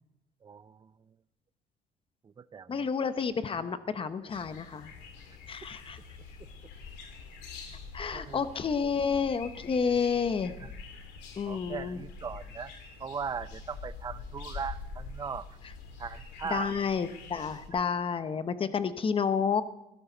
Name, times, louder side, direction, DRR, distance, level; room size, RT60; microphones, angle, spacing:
voice 1, 0.4-1.1 2.2-2.9 8.1-8.5 10.6-10.7 11.5-12.7 13.0-15.5 16.0-16.7 17.9-18.0, right 6 dB, 25° right, 15 dB, 0.5 m, -39 dB
voice 2, 2.7-4.9 5.5-6.0 7.9-10.6 11.4-12.0 16.5-19.6, left 6 dB, 30° left, 12 dB, 0.9 m, -30 dB
sound 1, 4.3-17.7, left 4 dB, 90° left, 2.5 m, -45 dB
16.5 x 12.5 x 4.0 m, 0.89 s
cardioid pair, 110°, 17 cm